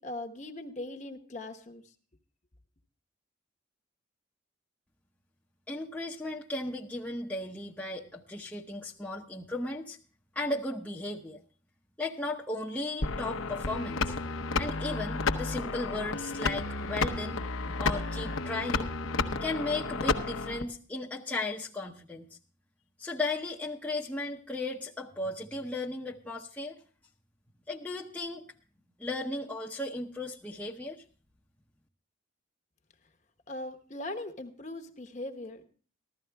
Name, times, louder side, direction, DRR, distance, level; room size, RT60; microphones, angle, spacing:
voice 1, 0.0-1.8 33.5-35.6, left 2 dB, 35° left, 6 dB, 1.0 m, -40 dB
voice 2, 5.7-10.0 10.3-11.4 12.0-14.1 14.6-17.4 17.8-18.9 19.4-22.3 23.0-26.7 27.7-28.4 29.0-31.0, left 2 dB, 5° left, -4 dB, 0.7 m, -35 dB
sound 1, 13.0-20.6, left 3 dB, 80° left, 0.8 m, -32 dB
15.0 x 12.5 x 3.4 m, 0.40 s
head